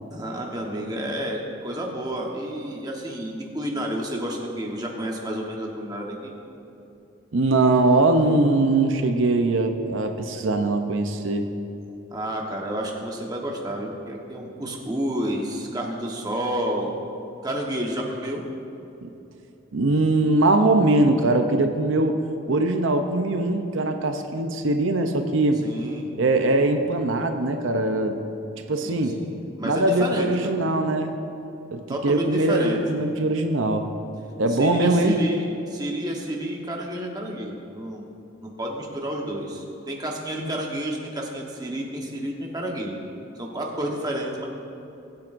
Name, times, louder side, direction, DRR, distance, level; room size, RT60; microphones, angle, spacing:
voice 1, 0.1-6.3 12.1-16.9 17.4-18.4 25.6-26.1 28.8-30.6 31.9-32.8 34.5-38.0 38.4-43.0 43.4-44.4, right 1 dB, 20° right, -1 dB, 1.1 m, -30 dB
voice 2, 7.3-11.5 19.0-19.1 19.7-22.2 22.5-25.6 26.2-28.2 28.7-29.2 29.6-31.1 31.7-33.9 34.4-35.2, right 2 dB, 70° right, 5 dB, 0.6 m, -21 dB
22.5 x 7.5 x 2.6 m, 2.9 s
head